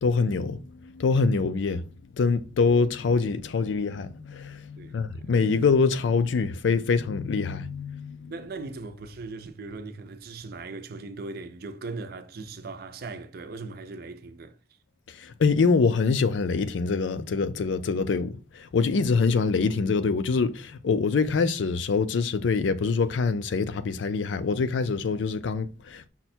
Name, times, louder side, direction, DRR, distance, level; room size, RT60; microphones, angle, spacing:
voice 1, 0.0-8.3 15.1-26.1, left 4 dB, 75° left, 0.4 m, -25 dB
voice 2, 4.8-5.3 8.3-14.6, right 3 dB, 55° right, 0.5 m, -39 dB
5.6 x 2.2 x 4.3 m
head